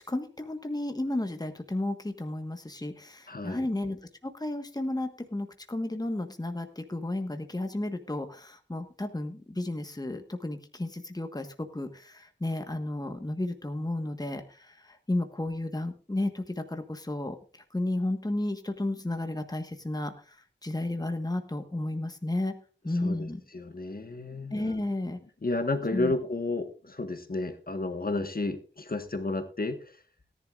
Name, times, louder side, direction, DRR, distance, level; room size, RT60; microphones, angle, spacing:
voice 1, 0.1-11.5 11.7-17.3 17.7-20.1 20.6-22.5 22.8-23.4 24.5-25.2 25.9-26.1, left 1 dB, 20° left, 6 dB, 1.4 m, -33 dB
voice 2, 3.3-3.7 22.9-23.3 23.5-24.8 25.4-29.8, left 2 dB, 50° left, 7 dB, 1.5 m, -32 dB
17.5 x 11.0 x 2.5 m, 0.37 s
wide cardioid pair, 60°, 19 cm